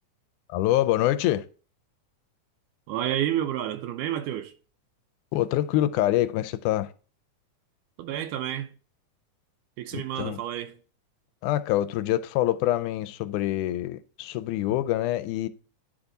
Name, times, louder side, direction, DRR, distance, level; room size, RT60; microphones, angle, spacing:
voice 1, 0.5-1.4 5.3-6.9 10.2-10.4 11.4-15.5, left 14 dB, 85° left, 2.0 m, -25 dB
voice 2, 2.9-4.5 8.0-8.7 9.8-10.8, right 11 dB, 85° right, 2.2 m, -30 dB
10.5 x 3.6 x 3.8 m
omnidirectional pair, 3.6 m